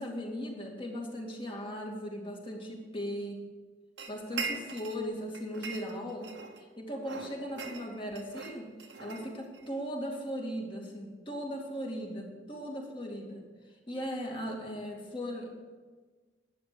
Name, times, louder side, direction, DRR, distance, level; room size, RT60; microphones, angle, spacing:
voice 1, 0.0-3.4 4.1-6.3 6.8-8.7 9.0-13.5 13.9-15.5, equal, 30° left, 0 dB, 2.4 m, -38 dB
sound 1, 4.0-5.0 5.3-6.6 7.0-9.7, right 4 dB, 75° right, 1.3 m, -41 dB
11.5 x 9.3 x 6.9 m, 1.4 s
head